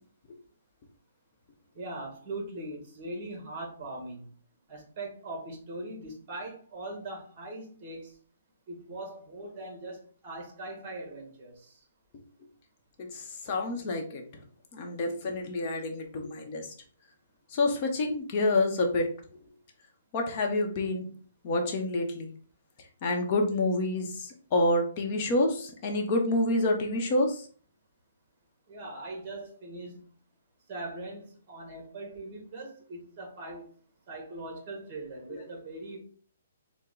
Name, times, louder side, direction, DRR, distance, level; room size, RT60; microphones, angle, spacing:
voice 1, 1.7-4.3 4.7-8.1 8.7-11.8 28.7-30.0 30.7-33.7 34.1-36.0, right 2 dB, 30° right, 3 dB, 1.4 m, -41 dB
voice 2, 13.0-14.2 14.7-16.7 17.5-19.1 20.1-21.1 21.4-22.3 23.0-27.5 35.3-35.4, left 2 dB, 35° left, 2 dB, 0.8 m, -28 dB
4.4 x 2.1 x 3.8 m, 0.43 s
hypercardioid pair, 160°, 0 cm